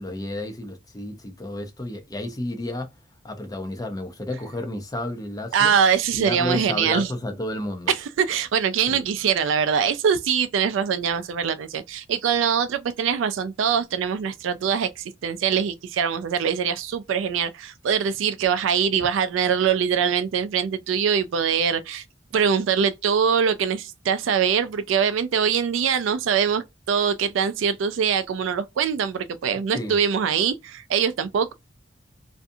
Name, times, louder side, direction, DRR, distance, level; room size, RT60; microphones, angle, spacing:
voice 1, 0.0-2.9 3.2-5.7 6.1-7.9 8.9-9.1 29.7-30.0, left 1 dB, 20° left, 0.5 m, -31 dB
voice 2, 5.5-7.1 7.9-22.0 22.3-31.5, right 7 dB, 75° right, 0.3 m, -23 dB
2.5 x 2.3 x 2.6 m
head